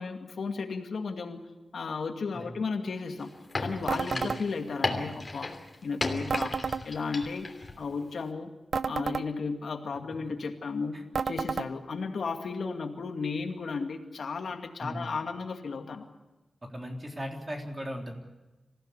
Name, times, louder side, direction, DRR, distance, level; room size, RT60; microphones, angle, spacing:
voice 1, 0.0-1.4 1.7-3.3 3.6-5.6 5.8-6.5 6.8-7.5 7.8-8.5 8.9-11.0 11.3-16.1, left 4 dB, 80° left, 4 dB, 2.2 m, -34 dB
sound 1, 3.2-7.7 8.0-8.1, left 2 dB, 30° left, 3.1 m, -34 dB
sound 2, 3.9-4.4 6.3-6.8 8.7-9.3 11.1-11.7, right 5 dB, 65° right, 0.7 m, -30 dB
voice 2, 16.6-18.1, equal, 25° right, 1 dB, 3.8 m, -37 dB
26.0 x 16.5 x 8.3 m, 1.1 s
wide cardioid pair, 135°, 0 cm